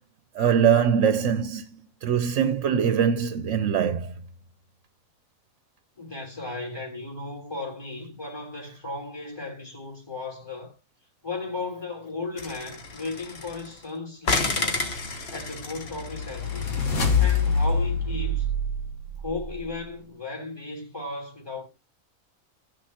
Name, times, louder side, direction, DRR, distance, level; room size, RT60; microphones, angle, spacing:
voice 1, 0.4-4.1, right 8 dB, 65° right, 1.0 m, -23 dB
voice 2, 6.0-10.8 11.2-14.8 15.3-16.9 17.2-18.5 19.2-21.7, left 3 dB, 15° left, 3.3 m, -35 dB
sound 1, 12.4-13.8 14.2-17.5, left 3 dB, 50° left, 1.4 m, -31 dB
sound 2, 15.5-19.7, left 3 dB, 90° left, 2.0 m, -26 dB
17.0 x 6.4 x 2.8 m
omnidirectional pair, 1.4 m